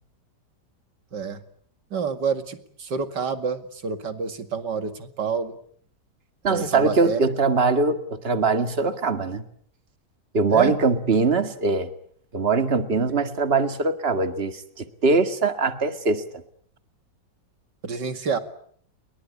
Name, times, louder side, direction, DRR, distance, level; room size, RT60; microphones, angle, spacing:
voice 1, 1.1-1.4 1.9-5.6 6.5-7.2 10.5-10.7 17.8-18.4, right 6 dB, 75° right, 9 dB, 2.8 m, -28 dB
voice 2, 6.4-9.4 10.3-11.9 12.3-16.2, right 4 dB, 35° right, 8 dB, 2.1 m, -22 dB
29.5 x 23.0 x 8.4 m, 0.64 s
omnidirectional pair, 1.8 m